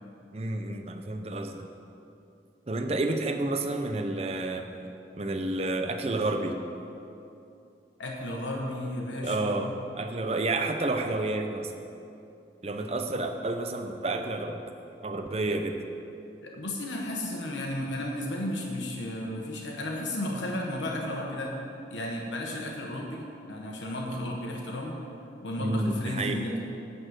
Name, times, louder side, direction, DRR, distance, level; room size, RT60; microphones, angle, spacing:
voice 1, 0.3-1.7 2.7-4.7 5.2-6.6 9.2-11.7 12.6-14.6 15.0-15.8 25.6-26.4, right 2 dB, 35° right, 6 dB, 0.6 m, -30 dB
voice 2, 8.0-9.7 16.4-21.6 21.9-25.0 25.4-26.6, left 1 dB, 85° left, -1 dB, 1.2 m, -33 dB
11.0 x 4.3 x 7.9 m, 2.7 s
head